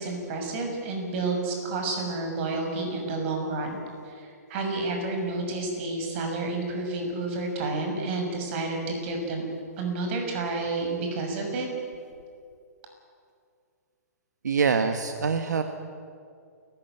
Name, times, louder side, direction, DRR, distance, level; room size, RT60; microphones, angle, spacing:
voice 1, 0.0-9.4 9.8-11.7, right 3 dB, 40° right, 3 dB, 6.7 m, -30 dB
voice 2, 14.4-15.6, right 5 dB, 80° right, 7 dB, 1.6 m, -24 dB
29.5 x 15.0 x 9.4 m, 2.4 s
hypercardioid pair, 140°, 9 cm